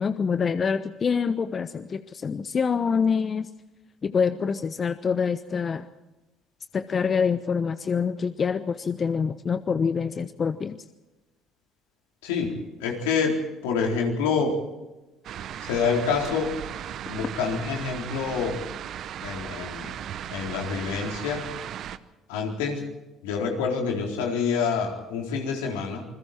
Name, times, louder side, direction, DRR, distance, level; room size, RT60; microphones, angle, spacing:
voice 1, 0.0-3.5 4.0-5.9 6.7-10.8, left 6 dB, 40° left, 12 dB, 0.9 m, -26 dB
voice 2, 12.2-14.6 15.6-16.6 17.1-18.6 19.2-19.9 20.3-21.5 22.3-22.8 23.2-26.0, left 5 dB, 85° left, 0 dB, 4.0 m, -27 dB
sound 1, 15.2-22.0, right 10 dB, 60° right, 0.9 m, -36 dB
28.0 x 21.0 x 4.5 m, 1.1 s
hypercardioid pair, 65°, 0 cm